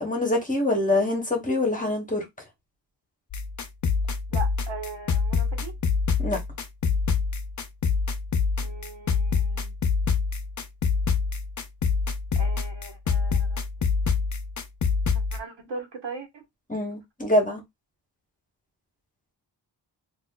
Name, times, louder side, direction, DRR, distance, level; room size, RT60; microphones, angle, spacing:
voice 1, 0.0-2.2 6.2-6.4 16.7-17.6, left 1 dB, 20° left, 1.1 m, -24 dB
sound 1, 3.3-15.4, left 5 dB, 40° left, 0.5 m, -26 dB
voice 2, 4.3-5.7 8.6-9.7 12.3-13.6 14.1-14.2 15.1-16.4, right 4 dB, 75° right, 1.2 m, -39 dB
4.1 x 2.6 x 2.3 m
wide cardioid pair, 150°, 44 cm